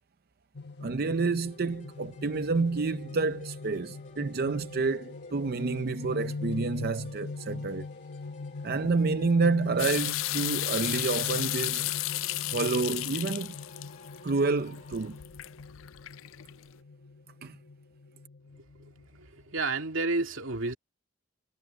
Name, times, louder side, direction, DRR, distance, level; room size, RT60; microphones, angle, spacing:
sound 1, 0.5-19.7, left 3 dB, 60° left, 1.3 m, -42 dB
voice 1, 0.8-7.9 8.6-11.9 12.5-13.5 14.2-15.2 17.4-17.6, right 4 dB, 50° right, 0.5 m, -29 dB
sound 2, 1.4-15.1, left 2 dB, 40° left, 2.9 m, -54 dB
sound 3, 9.8-16.6, left 17 dB, 90° left, 0.4 m, -33 dB
voice 2, 19.2-20.8, right 3 dB, 90° right, 2.4 m, -30 dB
head